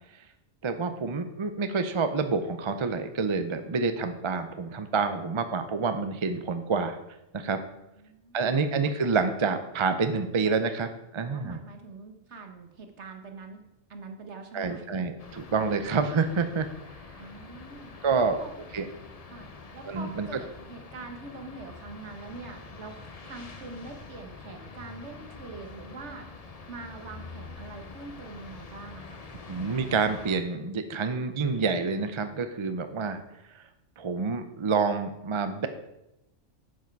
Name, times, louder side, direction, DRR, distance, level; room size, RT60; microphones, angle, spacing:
voice 1, 0.6-7.0 7.3-7.6 8.3-11.6 14.5-16.7 18.0-18.4 18.7-18.9 19.9-20.3 29.5-33.2 33.5-33.6 34.0-35.7, right 4 dB, 35° right, 9 dB, 0.5 m, -28 dB
voice 2, 8.0-8.6 11.2-13.6 13.9-14.9 17.2-18.6 19.3-23.0 23.2-26.3 26.7-29.3, right 3 dB, 60° right, 5 dB, 1.5 m, -44 dB
sound 1, 15.2-30.4, left 4 dB, 35° left, 0.8 m, -46 dB
10.5 x 7.3 x 4.6 m, 0.89 s
omnidirectional pair, 1.3 m